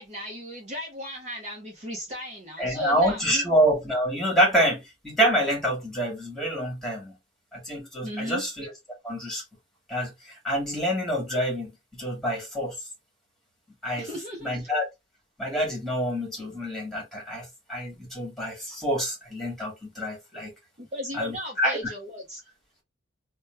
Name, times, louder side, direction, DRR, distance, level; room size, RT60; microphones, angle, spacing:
voice 1, 0.0-3.5 8.0-8.4 14.0-14.7 20.8-22.4, equal, 35° right, 0.8 m, -36 dB
voice 2, 2.6-7.1 7.5-8.7 9.0-9.4 9.9-11.7 12.0-12.7 13.8-14.1 14.4-14.9 15.4-20.5 21.1-21.8, equal, ahead, 1.6 m, -27 dB
3.1 x 2.2 x 3.1 m
head